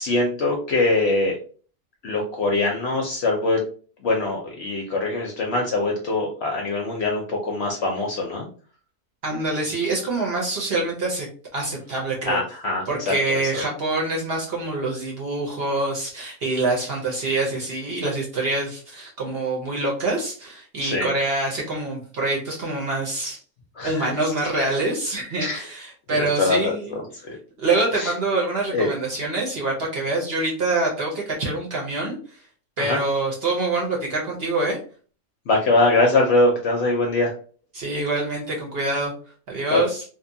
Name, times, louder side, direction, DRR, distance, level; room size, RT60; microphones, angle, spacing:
voice 1, 0.0-1.4 2.0-3.6 4.0-8.5 12.3-13.1 13.5-13.6 20.8-21.1 23.8-24.1 24.6-24.7 25.4-25.6 26.1-27.4 27.9-28.1 28.7-28.9 32.8-33.0 35.5-37.3 39.7-39.8, left 2 dB, 60° left, 0 dB, 0.7 m, -23 dB
voice 2, 9.2-11.3 11.5-12.4 12.9-23.4 23.8-27.0 27.6-32.2 32.8-34.8 37.7-39.1 39.5-40.0, right 2 dB, 50° right, -1 dB, 0.8 m, -25 dB
2.7 x 2.2 x 2.6 m, 0.41 s
omnidirectional pair, 1.5 m